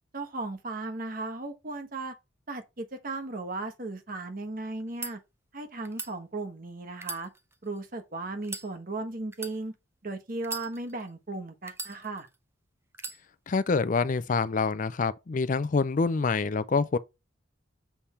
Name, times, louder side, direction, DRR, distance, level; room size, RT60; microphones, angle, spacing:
voice 1, 0.1-2.1 2.5-5.2 5.5-7.3 7.6-9.7 10.0-12.3, right 2 dB, 45° right, 1.2 m, -36 dB
sound 1, 4.8-5.1 5.8-6.1 6.9-7.9 8.4-8.7 9.3-9.6 10.4-11.1 11.7-12.4 12.9-13.2, right 3 dB, 15° right, 0.6 m, -39 dB
voice 2, 13.5-17.0, left 4 dB, 40° left, 0.4 m, -26 dB
7.1 x 3.4 x 4.3 m
head